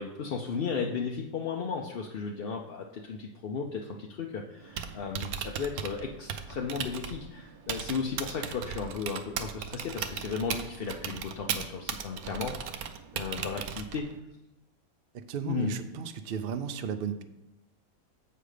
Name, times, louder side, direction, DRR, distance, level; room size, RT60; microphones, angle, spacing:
voice 1, 0.0-14.1 15.5-15.8, left 5 dB, 55° left, 1 dB, 0.7 m, -35 dB
Typing, 4.6-14.2, right 7 dB, 90° right, 1.1 m, -37 dB
voice 2, 15.1-17.2, right 7 dB, 60° right, 9 dB, 0.6 m, -34 dB
7.8 x 5.2 x 5.0 m, 0.95 s
omnidirectional pair, 1.5 m